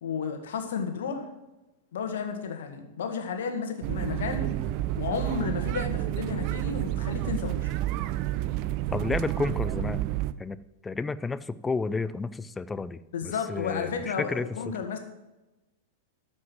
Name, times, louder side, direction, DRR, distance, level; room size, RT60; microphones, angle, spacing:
voice 1, 0.0-1.3 1.9-4.5 4.9-7.7 13.1-15.0, left 6 dB, 65° left, 5 dB, 1.8 m, -32 dB
sound 1, 3.8-10.3, right 14 dB, 45° right, 0.5 m, -30 dB
voice 2, 8.9-10.0 10.4-10.6 10.8-14.5, left 4 dB, 15° left, 16 dB, 0.5 m, -31 dB
13.0 x 5.3 x 7.5 m, 1.0 s
figure-of-eight pair, 95°, 0 cm